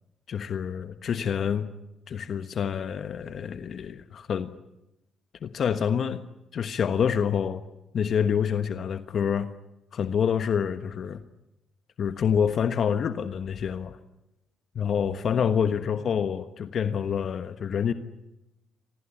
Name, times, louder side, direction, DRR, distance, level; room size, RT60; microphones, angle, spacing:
voice 1, 0.3-1.7 2.1-4.5 5.4-6.2 6.5-7.6 7.9-9.5 9.9-11.2 12.0-14.0 14.7-17.9, left 7 dB, 60° left, 10 dB, 1.3 m, -27 dB
25.5 x 19.0 x 10.0 m, 0.92 s
cardioid pair, 90°, 0 cm